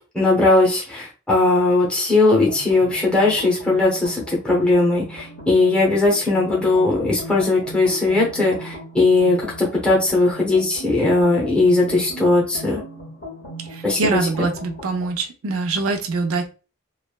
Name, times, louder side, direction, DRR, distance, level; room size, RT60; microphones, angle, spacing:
voice 1, 0.1-12.8 13.8-14.2, left 2 dB, 5° left, -4 dB, 0.7 m, -18 dB
sound 1, 2.4-15.1, equal, 55° left, 1.0 m, -37 dB
voice 2, 13.7-16.5, right 3 dB, 90° right, 5 dB, 0.5 m, -24 dB
3.1 x 2.0 x 2.2 m, 0.33 s
head